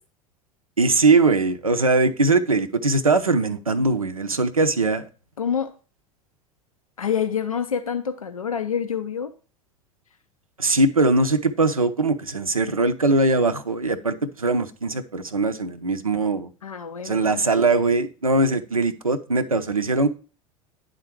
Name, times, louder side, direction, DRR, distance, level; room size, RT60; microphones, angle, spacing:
voice 1, 0.8-5.1 10.6-16.5 17.0-20.1, right 3 dB, 90° right, 0.5 m, -21 dB
voice 2, 5.4-5.7 7.0-9.3 16.6-17.4, left 7 dB, 85° left, 0.5 m, -27 dB
9.7 x 3.8 x 4.4 m
figure-of-eight pair, 75°, 17 cm